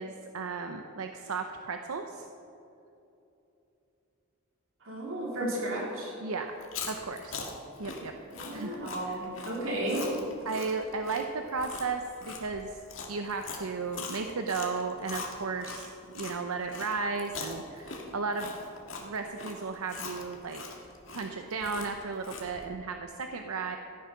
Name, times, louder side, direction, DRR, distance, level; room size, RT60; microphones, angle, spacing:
voice 1, 0.0-2.3 6.2-6.5 6.9-7.5 7.8-8.1 8.5-8.8 9.0-9.2 10.4-12.8 13.1-15.9 16.1-18.5 19.0-20.8 21.1-23.8, right 4 dB, 90° right, 5 dB, 0.7 m, -34 dB
voice 2, 4.8-6.1 8.3-10.1, right 1 dB, 65° right, -3 dB, 3.5 m, -33 dB
Chewing mastication, 6.5-16.4 16.7-22.6, left 4 dB, 65° left, 1.9 m, -41 dB
14.0 x 9.9 x 5.8 m, 2.8 s
head